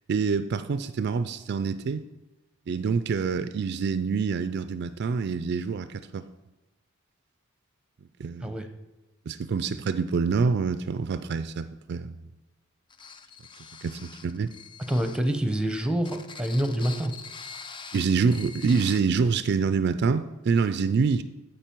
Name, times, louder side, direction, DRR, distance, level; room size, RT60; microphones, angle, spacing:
voice 1, 0.1-2.0 2.7-6.2 8.2-8.6 9.3-12.3 13.8-14.5 17.9-21.2, right 5 dB, 55° right, 12 dB, 0.4 m, -26 dB
sound 1, 12.9-15.3 16.0-19.0, left 6 dB, 25° left, 0.4 m, -44 dB
voice 2, 14.9-17.1, right 1 dB, 5° right, 7 dB, 0.7 m, -26 dB
14.0 x 5.2 x 4.5 m, 1.1 s
head